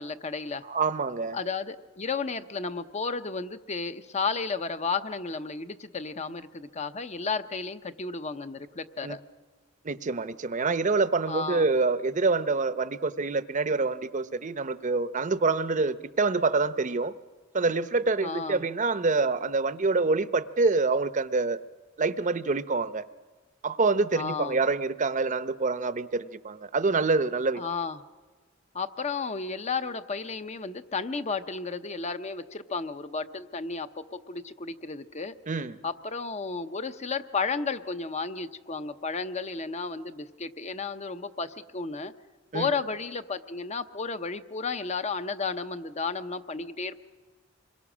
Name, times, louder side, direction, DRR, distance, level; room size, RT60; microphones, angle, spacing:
voice 1, 0.0-0.6 1.3-9.2 11.3-11.6 18.2-18.6 24.1-24.6 27.5-28.0 28.7-35.3 35.8-42.1 42.5-47.0, left 4 dB, 35° left, 11 dB, 0.8 m, -33 dB
voice 2, 0.6-1.4 9.0-9.2 9.8-17.1 17.5-21.6 22.0-23.0 23.6-27.6 35.5-35.8 42.5-42.7, right 3 dB, 40° right, 13 dB, 0.7 m, -26 dB
26.0 x 22.0 x 6.2 m, 1.4 s
head